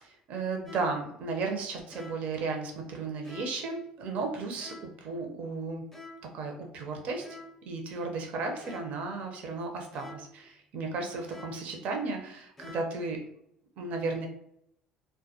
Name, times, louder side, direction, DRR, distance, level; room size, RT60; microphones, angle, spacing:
voice 1, 0.0-4.7 5.0-5.8 6.3-7.3 7.6-13.2 13.8-14.3, right 3 dB, 60° right, 3 dB, 0.5 m, -34 dB
sound 1, 0.7-1.1 1.9-2.4 3.2-3.7 4.6-5.1 5.9-6.4 7.2-7.7 8.6-9.1 9.9-10.4 11.3-11.8 12.6-13.1, left 2 dB, 10° left, 0.5 m, -48 dB
2.2 x 2.1 x 2.7 m, 0.76 s
hypercardioid pair, 75°, 3 cm